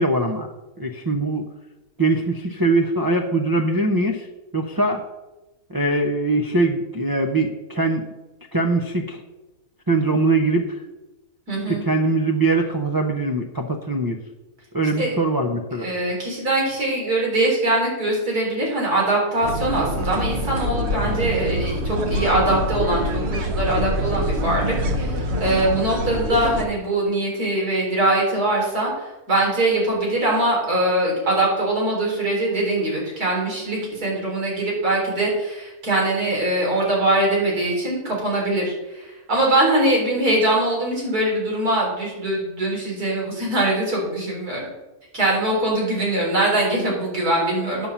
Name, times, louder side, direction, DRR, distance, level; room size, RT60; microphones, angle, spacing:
voice 1, 0.0-1.4 2.0-4.3 4.5-5.0 5.7-8.0 8.5-9.2 9.9-10.8 11.7-14.2 14.7-15.9, right 2 dB, 20° right, 0 dB, 0.5 m, -22 dB
voice 2, 11.5-11.8 15.0-15.1 15.8-44.7 45.1-47.9, right 1 dB, 85° right, -3 dB, 4.3 m, -22 dB
sound 1, 19.4-26.6, equal, 50° right, 1.2 m, -25 dB
9.4 x 5.6 x 7.3 m, 1.0 s
omnidirectional pair, 1.6 m